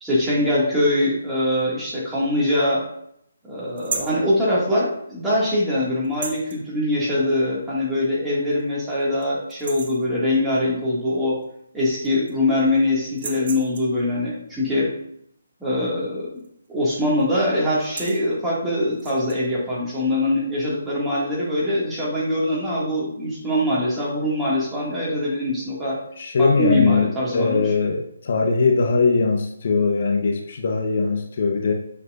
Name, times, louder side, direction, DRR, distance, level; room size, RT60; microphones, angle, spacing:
voice 1, 0.0-2.8 3.4-11.4 11.7-14.9 15.6-16.3 16.7-26.0 26.4-27.6, left 1 dB, 5° right, -8 dB, 2.2 m, -23 dB
sound 1, 3.8-4.2 6.0-6.6 7.9-8.0 8.5-8.6 9.0-9.2 9.5-10.1 11.4-11.5 11.8-12.5 13.1-14.0 16.4-16.7 16.9-17.2 17.7-18.2 18.9-19.4, right 4 dB, 55° right, 1.2 m, -34 dB
voice 2, 26.2-31.7, left 4 dB, 50° left, 2 dB, 0.9 m, -21 dB
7.8 x 5.9 x 2.6 m, 0.72 s
hypercardioid pair, 160°, 0 cm